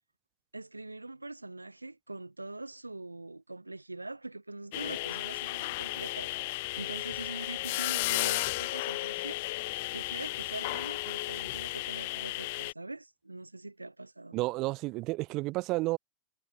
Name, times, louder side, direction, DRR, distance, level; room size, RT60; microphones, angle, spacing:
voice 1, 0.5-9.4 9.9-14.4, right 2 dB, 85° right, 4.8 m, -43 dB
sound 1, 4.7-12.7, left 21 dB, 50° left, 3.0 m, -34 dB
voice 2, 14.3-16.0, right 21 dB, 40° right, 2.0 m, -31 dB
figure-of-eight pair, 90°, 0 cm